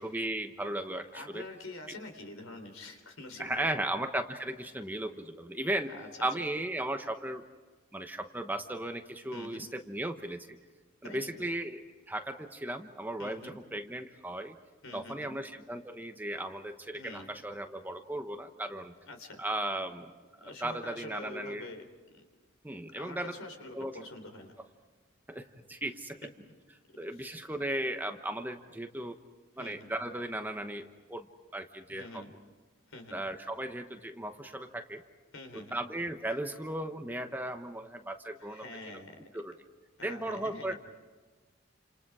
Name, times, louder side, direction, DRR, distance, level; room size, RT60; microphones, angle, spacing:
voice 1, 0.0-1.4 3.4-5.9 6.2-7.4 7.9-10.5 11.0-11.8 12.1-14.6 14.9-18.9 19.4-21.7 22.6-23.3 23.7-23.9 25.3-26.2 27.0-29.2 29.6-31.3 31.5-32.2 33.1-35.0 35.5-38.6 39.3-39.5 40.0-40.7, right 1 dB, 10° right, 6 dB, 1.0 m, -36 dB
voice 2, 1.1-3.9 5.9-6.1 9.3-9.7 11.0-11.5 13.2-13.6 14.8-15.3 16.9-17.3 19.1-19.4 20.4-21.9 22.9-24.5 26.2-26.3 27.2-27.3 29.6-29.9 31.9-32.3 32.9-33.2 35.3-35.8 38.4-39.2 40.0-40.8, left 2 dB, 80° left, 6 dB, 3.8 m, -46 dB
29.5 x 27.5 x 4.9 m, 1.3 s
head